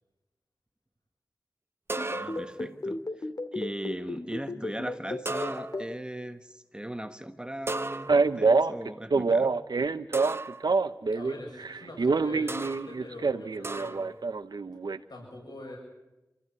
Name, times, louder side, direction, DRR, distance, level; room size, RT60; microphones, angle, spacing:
sound 1, 1.9-2.6 5.3-6.0 7.7-8.4 10.1-10.7 12.5-13.0 13.6-14.2, right 2 dB, 35° right, 0.7 m, -35 dB
sound 2, 2.0-5.8, left 2 dB, 65° left, 2.8 m, -33 dB
voice 1, 2.0-9.5, right 1 dB, 15° right, 8 dB, 1.3 m, -39 dB
Male speech man speaking, 8.1-11.3 11.6-15.0, right 4 dB, 90° right, 0.9 m, -26 dB
voice 2, 11.1-14.1 15.1-15.8, left 1 dB, 85° left, -1 dB, 7.2 m, -44 dB
27.0 x 14.5 x 9.7 m, 1.0 s
wide cardioid pair, 60°, 7 cm